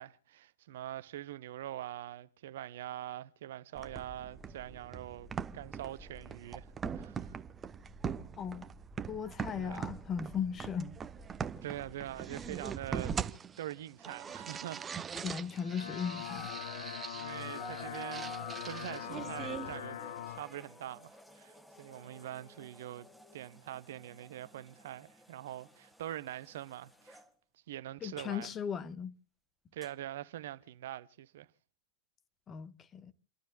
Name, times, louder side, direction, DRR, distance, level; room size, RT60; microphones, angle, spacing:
voice 1, 0.0-6.7 6.9-7.4 9.6-9.9 11.6-13.2 13.6-15.1 17.1-23.1 23.3-27.2 27.7-28.5 29.7-31.5, right 13 dB, 55° right, 0.9 m, -44 dB
sound 1, 3.7-19.8, right 6 dB, 20° right, 1.0 m, -42 dB
voice 2, 9.1-11.0 15.2-16.5 16.8-16.9 28.0-29.1 32.5-33.1, left 7 dB, 25° left, 1.3 m, -37 dB
sound 2, 15.1-15.6 16.1-27.3 28.5-28.6 29.8-29.9, right 1 dB, 5° left, 2.0 m, -52 dB
sound 3, 15.5-20.4, left 11 dB, 60° left, 0.6 m, -42 dB
30.0 x 12.5 x 2.3 m
figure-of-eight pair, 90°, 0 cm